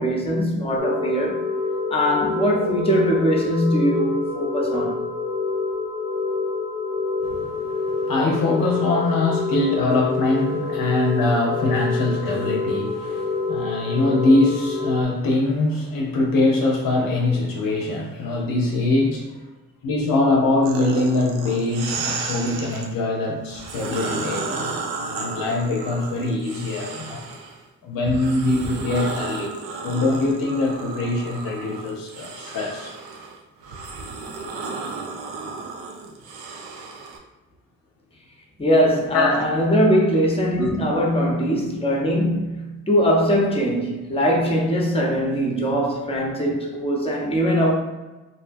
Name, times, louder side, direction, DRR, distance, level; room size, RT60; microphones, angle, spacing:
voice 1, 0.0-1.4 1.9-5.0 38.6-47.7, equal, 15° left, -1 dB, 0.7 m, -21 dB
sound 1, 0.8-15.0, left 4 dB, 15° right, 0.7 m, -27 dB
voice 2, 7.2-19.4 19.8-27.2 27.8-29.6 29.8-32.9 39.1-39.4 40.6-40.7, left 2 dB, 70° left, 0 dB, 0.6 m, -23 dB
sound 2, 20.6-22.9 23.5-27.6 28.0-37.2, right 4 dB, 85° right, 0.5 m, -33 dB
2.6 x 2.1 x 2.5 m, 1.1 s
supercardioid pair, 50°, 35 cm